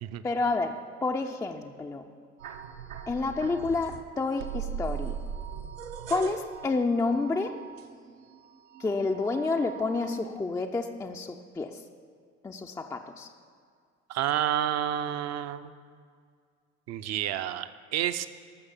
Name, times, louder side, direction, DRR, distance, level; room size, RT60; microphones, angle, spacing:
voice 1, 0.2-2.1 3.1-5.2 6.1-7.6 8.8-11.8 12.4-13.3, left 3 dB, 10° left, 4 dB, 0.4 m, -29 dB
sound 1, 2.4-4.0 4.4-8.4 8.7-10.2, right 8 dB, 70° right, 0.8 m, -39 dB
voice 2, 14.1-15.7 16.9-18.3, right 11 dB, 40° right, 11 dB, 0.6 m, -29 dB
13.5 x 6.4 x 7.0 m, 2.1 s
figure-of-eight pair, 55°, 40 cm